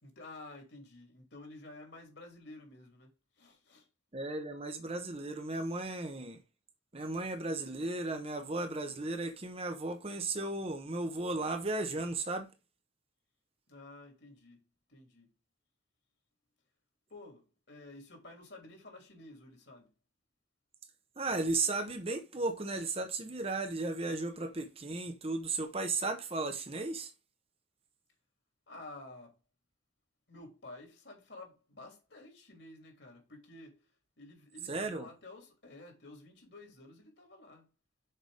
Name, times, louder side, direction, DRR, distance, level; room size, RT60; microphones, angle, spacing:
voice 1, 0.0-3.9 13.7-14.6 14.9-15.3 17.1-19.9 28.7-29.3 30.3-33.9 34.2-37.7, left 2 dB, 65° left, 3.1 m, -52 dB
voice 2, 4.1-6.4 6.9-12.5 21.2-27.1 34.7-35.1, right 2 dB, 30° right, 0.9 m, -35 dB
6.7 x 4.9 x 5.0 m
head